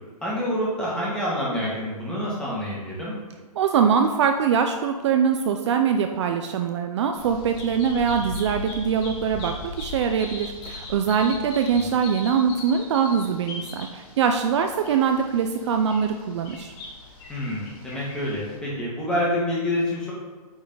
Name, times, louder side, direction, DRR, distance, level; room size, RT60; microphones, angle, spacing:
voice 1, 0.2-3.1 11.7-11.9 17.3-20.1, left 1 dB, 5° left, -7 dB, 2.0 m, -27 dB
voice 2, 3.5-16.7, right 7 dB, 50° right, 6 dB, 0.5 m, -23 dB
Bird vocalization bird call bird song, 7.2-18.6, left 2 dB, 30° left, 1.9 m, -39 dB
8.6 x 3.9 x 3.9 m, 1.4 s
hypercardioid pair, 145°, 20 cm